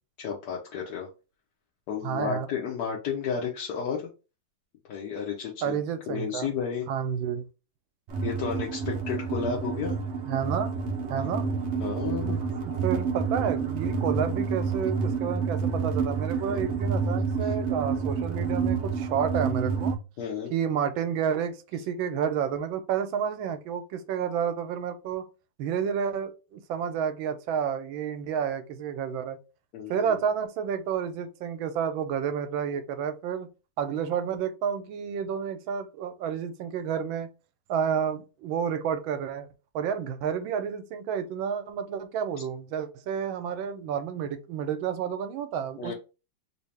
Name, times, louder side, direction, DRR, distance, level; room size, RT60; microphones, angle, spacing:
voice 1, 0.2-1.1 1.9-4.1 4.9-5.8 6.1-6.9 8.2-9.9 11.3-11.5 11.8-12.4 16.5-16.6 17.4-17.5 20.2-20.5 29.7-30.1 42.4-42.5 45.8-45.9, left 7 dB, 65° left, 1.2 m, -32 dB
voice 2, 2.0-2.5 5.6-6.5 6.9-7.4 10.3-10.7 11.1-11.4 12.1-12.3 12.6-20.0 20.5-25.2 25.6-29.4 29.9-33.5 33.8-37.3 37.7-39.5 39.7-45.9, right 7 dB, 85° right, 1.4 m, -30 dB
sound 1, 8.1-20.0, right 5 dB, 65° right, 0.6 m, -29 dB
3.4 x 2.8 x 3.2 m
omnidirectional pair, 2.1 m